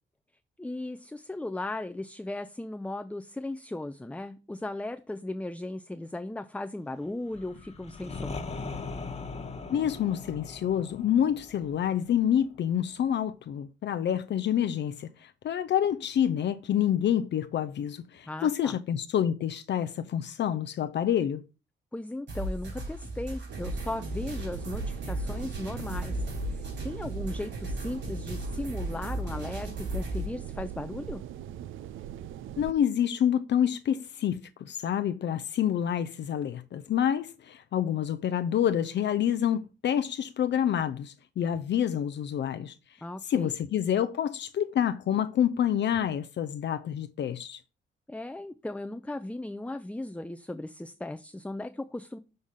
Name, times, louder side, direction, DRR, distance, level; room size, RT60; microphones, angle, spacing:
voice 1, 0.6-8.4 18.3-18.8 21.9-31.2 43.0-43.5 48.1-52.2, left 2 dB, 5° left, 0.5 m, -37 dB
sound 1, 7.3-13.0, left 4 dB, 35° left, 1.2 m, -40 dB
voice 2, 9.7-21.4 32.6-42.8 43.3-47.6, left 9 dB, 65° left, 0.5 m, -28 dB
sound 2, 22.3-30.3, right 1 dB, 65° right, 4.0 m, -35 dB
sound 3, 23.5-32.7, right 11 dB, 85° right, 0.4 m, -40 dB
6.5 x 3.5 x 5.7 m
cardioid pair, 60°, 20 cm